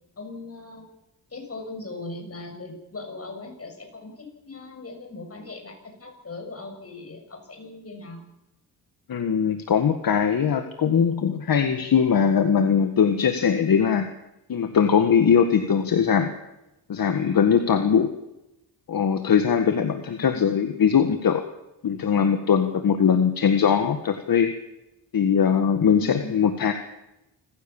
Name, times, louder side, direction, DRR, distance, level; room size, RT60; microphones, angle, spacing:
voice 1, 0.2-0.9 1.3-8.2 20.3-20.6 25.9-26.5, left 2 dB, 35° left, 3 dB, 7.1 m, -39 dB
voice 2, 9.1-14.1 14.5-16.3 16.9-18.1 18.9-21.4 21.8-24.5 25.1-26.7, left 7 dB, 55° left, 7 dB, 1.7 m, -21 dB
27.0 x 15.5 x 7.2 m, 0.91 s
cardioid pair, 95°, 41 cm